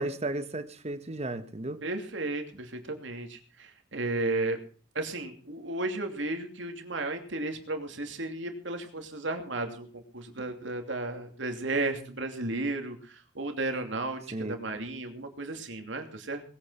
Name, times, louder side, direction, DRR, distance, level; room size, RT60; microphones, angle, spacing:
voice 1, 0.0-1.8 14.3-14.6, right 2 dB, 35° right, 10 dB, 1.3 m, -34 dB
voice 2, 1.8-4.6 4.9-16.4, right 2 dB, 80° right, 5 dB, 2.8 m, -34 dB
20.0 x 9.3 x 5.7 m, 0.42 s
head